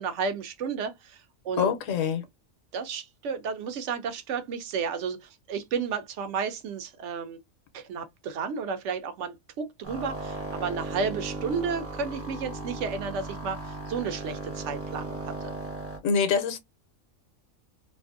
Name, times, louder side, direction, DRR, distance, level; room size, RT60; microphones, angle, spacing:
voice 1, 0.0-1.7 2.7-7.4 7.7-15.5, right 5 dB, 70° right, 0.9 m, -32 dB
voice 2, 1.6-2.2 16.0-16.6, left 6 dB, 75° left, 1.0 m, -25 dB
sound 1, 9.8-16.0, right 2 dB, 20° right, 0.4 m, -36 dB
2.6 x 2.5 x 2.4 m
omnidirectional pair, 1.4 m